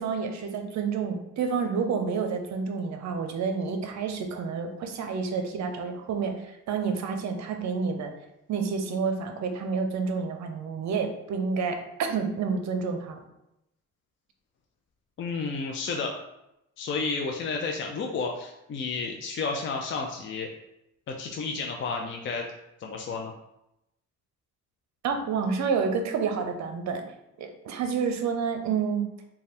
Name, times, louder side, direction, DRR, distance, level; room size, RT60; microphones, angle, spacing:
voice 1, 0.0-8.1 8.5-13.2 25.0-27.0 27.4-29.1, right 5 dB, 65° right, 5 dB, 0.6 m, -29 dB
voice 2, 15.2-16.1 16.8-20.5 21.1-22.4 22.8-23.3, left 4 dB, 40° left, 1 dB, 0.5 m, -31 dB
3.2 x 2.3 x 4.2 m, 0.86 s
cardioid pair, 90°, 30 cm